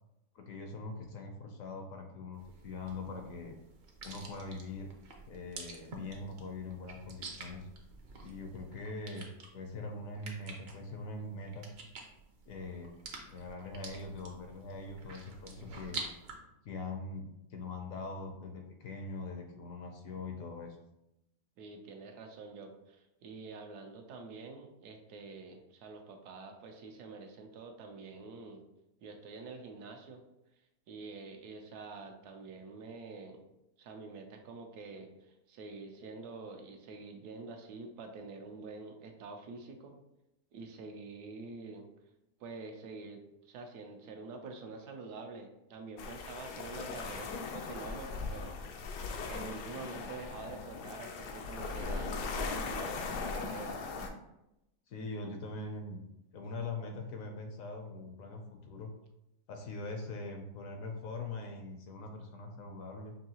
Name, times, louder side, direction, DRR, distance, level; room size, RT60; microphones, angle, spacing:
voice 1, 0.3-3.5 4.0-4.9 5.3-7.7 8.2-9.3 9.5-11.7 12.5-12.9 13.3-16.0 16.6-20.8 54.9-56.1 56.3-58.9 59.5-63.1, left 3 dB, 70° left, 4 dB, 0.9 m, -42 dB
sound 1, 2.4-16.3, right 4 dB, 55° right, 0.7 m, -48 dB
voice 2, 21.6-28.6 29.0-30.2 30.9-33.4 33.8-39.9 40.5-41.9 42.4-43.2 43.4-53.8, right 3 dB, 80° right, 4 dB, 1.2 m, -47 dB
sound 2, 46.0-54.1, left 4 dB, 85° left, 1.2 m, -39 dB
5.5 x 2.6 x 2.8 m, 0.88 s
omnidirectional pair, 1.7 m